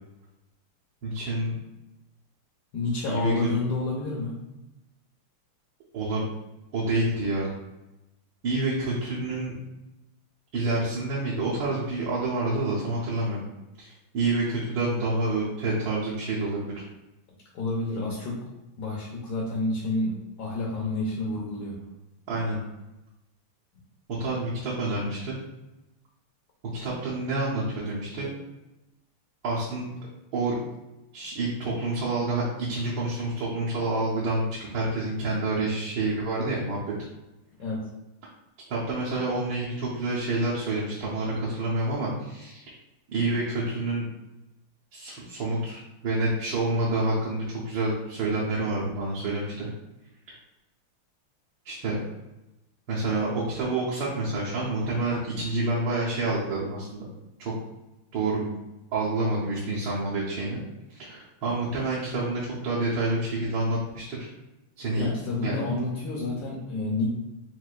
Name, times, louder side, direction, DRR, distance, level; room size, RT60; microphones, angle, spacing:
voice 1, 1.0-1.6 3.1-3.5 5.9-6.3 6.7-7.5 8.4-9.6 10.5-13.4 13.8-16.7 22.3-22.6 24.2-25.4 26.7-28.3 29.4-29.9 30.3-30.5 31.1-36.8 38.7-42.7 43.1-44.1 44.9-49.7 51.6-52.0 52.9-57.0 57.4-57.5 58.1-58.5 58.9-60.6 60.9-64.3 64.8-65.0 65.4-65.6, right 2 dB, 65° right, -7 dB, 1.4 m, -28 dB
voice 2, 2.7-4.4 17.5-18.4 18.8-21.8 37.6-37.9 65.0-67.1, left 2 dB, 60° left, -4 dB, 1.2 m, -29 dB
6.1 x 2.6 x 2.4 m, 0.96 s
omnidirectional pair, 2.4 m